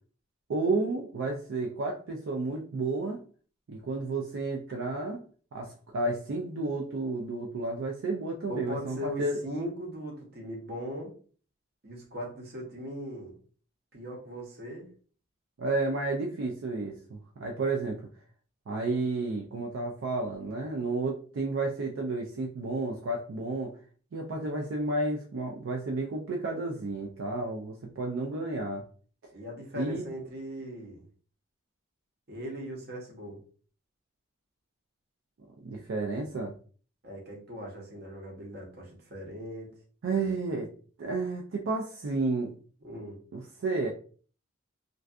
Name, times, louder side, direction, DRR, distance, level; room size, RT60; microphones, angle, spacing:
voice 1, 0.5-3.2 3.7-5.2 5.5-9.4 15.6-18.0 18.7-23.7 24.1-28.9 29.8-30.0 35.6-36.5 40.0-40.7 41.0-42.5 43.3-43.9, right 3 dB, 75° right, 0 dB, 0.4 m, -31 dB
voice 2, 8.5-11.1 11.8-13.4 13.9-14.9 29.3-31.0 32.3-33.4 37.0-39.7 40.2-40.3 42.8-43.2, equal, 50° right, -1 dB, 0.8 m, -39 dB
2.5 x 2.3 x 2.3 m, 0.41 s
head